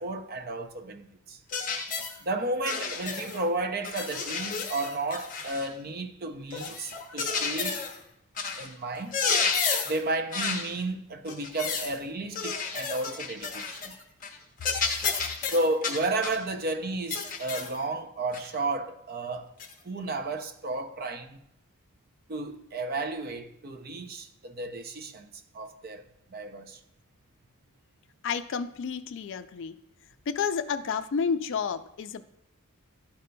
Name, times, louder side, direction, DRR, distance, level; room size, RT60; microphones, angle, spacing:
voice 1, 0.0-1.4 2.2-7.8 8.6-9.2 9.9-14.0 15.5-19.5 19.8-21.4 22.3-25.3 25.5-26.0 26.3-26.8, right 2 dB, 45° right, 0.5 m, -32 dB
sound 1, 1.5-2.2 2.6-3.4 3.8-5.7 6.5-8.0 8.4-8.7 9.0-10.0 10.3-10.7 11.3-11.9 12.3-13.9 14.2-14.4 14.6-16.4 17.1-17.8 18.3-18.5 19.6-19.7, left 5 dB, 40° left, 0.9 m, -31 dB
voice 2, 28.2-29.8 30.3-32.3, left 6 dB, 55° left, 0.4 m, -30 dB
11.5 x 5.2 x 2.2 m
head